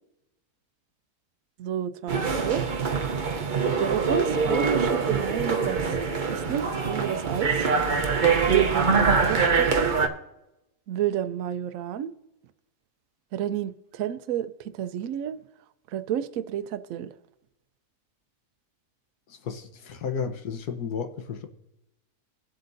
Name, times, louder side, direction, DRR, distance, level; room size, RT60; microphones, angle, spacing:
voice 1, 1.6-2.7 3.0-3.2 3.8-7.7 8.5-10.0 10.9-12.1 13.3-15.4 15.9-17.1, right 10 dB, 70° right, 0.9 m, -30 dB
sound 1, 2.1-10.1, right 5 dB, 40° right, 0.7 m, -24 dB
voice 2, 19.3-21.5, left 6 dB, 80° left, 1.6 m, -33 dB
22.0 x 7.7 x 2.6 m
omnidirectional pair, 1.6 m